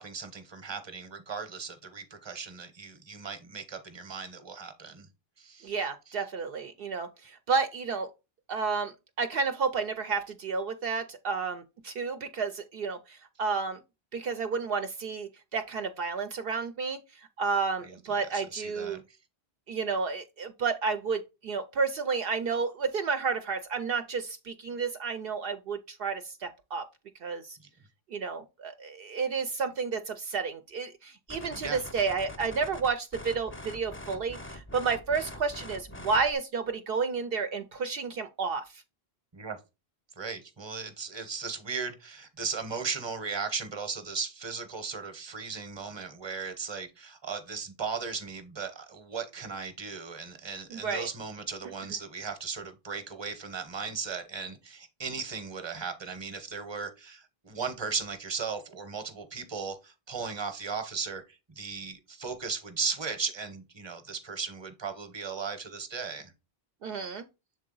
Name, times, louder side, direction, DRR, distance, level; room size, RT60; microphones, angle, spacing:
voice 1, 0.0-5.1 5.4-5.7 6.1-6.2 17.8-19.0 27.6-27.7 31.5-31.8 39.3-39.6 40.2-66.3, right 5 dB, 30° right, 0.9 m, -37 dB
voice 2, 5.6-8.1 8.5-13.8 14.1-17.0 17.4-19.0 19.7-26.8 27.2-27.6 28.1-38.6 50.7-51.1 66.8-67.2, right 5 dB, 70° right, 0.7 m, -31 dB
sound 1, 31.3-36.3, left 1 dB, 15° left, 0.4 m, -44 dB
6.9 x 3.7 x 3.8 m
omnidirectional pair, 1.0 m